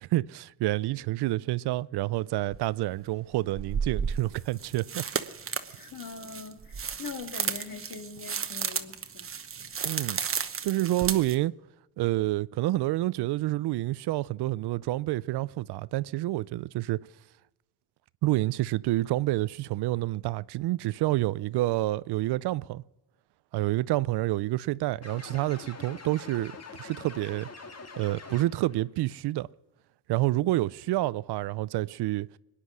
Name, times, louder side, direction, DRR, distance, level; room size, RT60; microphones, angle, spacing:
voice 1, 0.0-5.0 9.8-10.2 10.6-11.5 12.0-17.0 18.2-22.8 23.5-26.5 26.8-27.5 28.0-29.5 30.1-32.3, right 17 dB, 70° right, 0.5 m, -28 dB
sound 1, 2.5-2.6 3.5-11.3, right 6 dB, 30° right, 1.0 m, -33 dB
voice 2, 5.7-9.3, left 5 dB, 55° left, 2.2 m, -42 dB
sound 2, 25.0-28.8, left 4 dB, 40° left, 1.9 m, -45 dB
22.5 x 10.0 x 6.2 m
cardioid pair, 100°, 41 cm